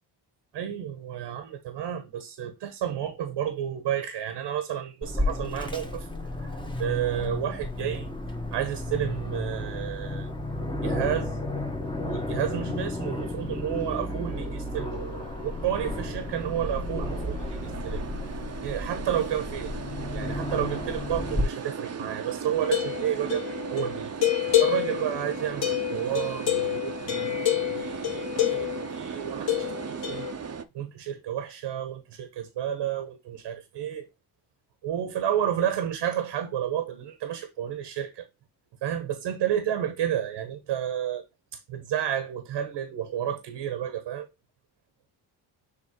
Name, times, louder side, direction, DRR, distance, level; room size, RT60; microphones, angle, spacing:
voice 1, 0.5-6.1 6.4-6.5 6.8-8.1 8.5-10.3 10.8-11.4 12.0-15.0 15.4-18.0 18.6-19.7 20.1-23.4 23.7-24.1 24.6-30.3 30.7-34.1 34.8-38.2 38.8-41.2 41.5-44.3, right 10 dB, 80° right, 1.5 m, -31 dB
Aircraft, 5.0-21.4, left 1 dB, 10° left, 1.6 m, -33 dB
sound 1, 11.6-30.6, right 6 dB, 35° right, 1.0 m, -38 dB
Cow bell, 22.6-28.9 29.5-30.3, left 14 dB, 65° left, 2.3 m, -28 dB
7.0 x 3.2 x 4.6 m
supercardioid pair, 65°, 43 cm